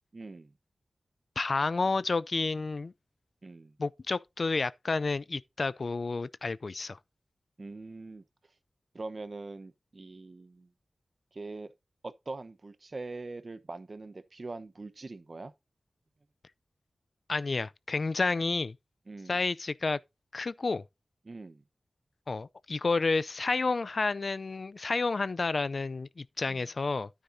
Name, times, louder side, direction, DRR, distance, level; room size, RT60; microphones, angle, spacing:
voice 1, 0.1-0.5 3.4-3.7 7.6-8.2 8.9-10.7 11.3-11.7 12.0-15.5 19.1-19.4 21.2-21.6 26.5-26.6, right 3 dB, 50° right, 0.9 m, -42 dB
voice 2, 1.4-2.9 3.8-7.0 17.3-18.7 19.3-20.0 20.3-20.8 22.3-27.1, left 3 dB, 60° left, 0.4 m, -30 dB
10.0 x 9.3 x 2.7 m
wide cardioid pair, 60°, 0 cm